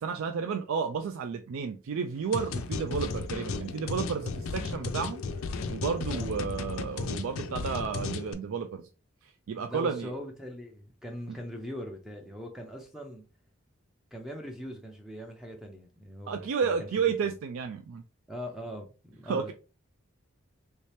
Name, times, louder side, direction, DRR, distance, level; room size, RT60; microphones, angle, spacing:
voice 1, 0.0-5.2 5.7-8.9 9.5-10.1 11.3-11.4 16.3-18.0 19.2-19.5, right 6 dB, 75° right, 0.4 m, -32 dB
sound 1, 2.3-8.3, left 4 dB, 80° left, 0.4 m, -34 dB
voice 2, 9.6-13.2 14.1-16.9 17.2-17.3 18.3-19.5, equal, ahead, 0.4 m, -41 dB
3.2 x 2.8 x 3.2 m
head